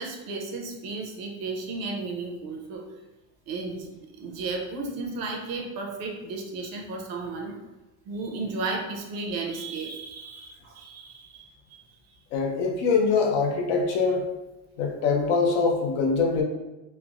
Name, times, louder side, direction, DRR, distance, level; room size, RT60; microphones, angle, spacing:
voice 1, 0.0-2.8 3.5-7.6 8.1-11.9, right 3 dB, 60° right, 1 dB, 0.7 m, -34 dB
voice 2, 12.3-14.3 14.8-16.4, left 4 dB, 75° left, 0 dB, 0.7 m, -23 dB
3.2 x 2.0 x 2.4 m, 1.1 s
cardioid pair, 120°, 41 cm